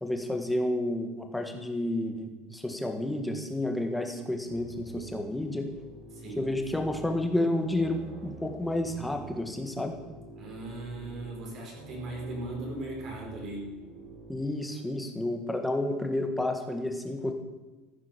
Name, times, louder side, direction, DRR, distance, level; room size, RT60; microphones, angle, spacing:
voice 1, 0.0-5.7 6.4-10.0 14.3-17.3, left 1 dB, 5° left, 4 dB, 1.7 m, -30 dB
sound 1, 4.5-14.5, right 3 dB, 60° right, 5.0 m, -47 dB
voice 2, 6.1-6.5 10.4-13.8, right 2 dB, 40° right, -1 dB, 4.7 m, -38 dB
15.0 x 10.5 x 6.8 m, 1.2 s
cardioid pair, 155°, 0 cm